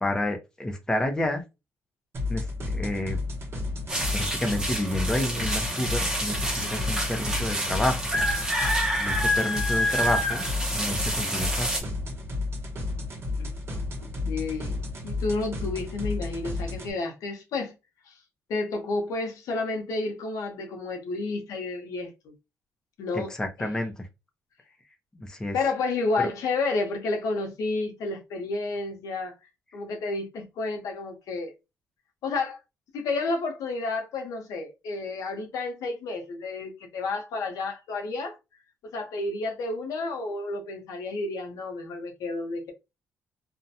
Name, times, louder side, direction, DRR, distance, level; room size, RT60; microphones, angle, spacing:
voice 1, 0.0-1.4 2.3-3.2 4.1-8.1 9.0-10.4 10.7-11.8 23.3-23.9 25.2-25.5 26.2-26.3, left 1 dB, 10° left, 0.5 m, -29 dB
sound 1, 2.1-16.9, left 2 dB, 45° right, 0.9 m, -32 dB
sound 2, 3.9-11.8, equal, 10° right, 0.9 m, -28 dB
voice 2, 6.6-6.9 13.4-17.7 18.1-18.2 18.5-22.3 23.0-23.3 25.5-29.3 29.7-31.5 32.2-32.6 32.9-38.4 38.9-42.7, left 3 dB, 85° left, 0.7 m, -31 dB
2.4 x 2.1 x 2.7 m
cardioid pair, 115°, 6 cm